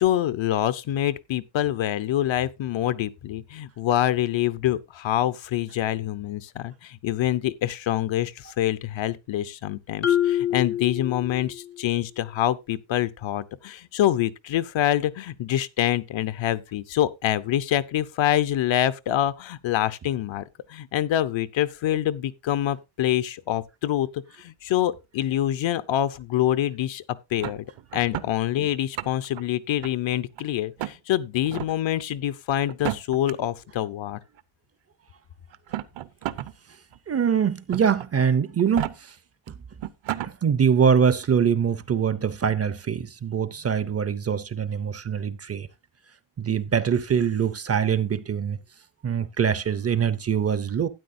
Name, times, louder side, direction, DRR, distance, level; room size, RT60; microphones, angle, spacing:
voice 1, 0.0-20.4 20.7-27.0 27.3-27.7 27.9-34.2, left 12 dB, 75° left, 0.8 m, -26 dB
Marimba xylophone, 10.0-11.8, left 11 dB, 35° left, 0.4 m, -26 dB
sound 1, 27.4-28.3 28.8-29.4 29.8-30.4 30.8-31.0 31.5-31.7 32.7-33.3 34.4-34.5 35.5-36.5 36.9-37.0 37.7-38.1 38.6-38.9 39.5-39.6 39.8-40.3, right 12 dB, 70° right, 0.8 m, -32 dB
voice 2, 37.1-39.1 40.2-45.7 46.4-48.6 49.0-50.9, right 7 dB, 35° right, 0.5 m, -23 dB
12.5 x 9.5 x 2.6 m
wide cardioid pair, 175°, 47 cm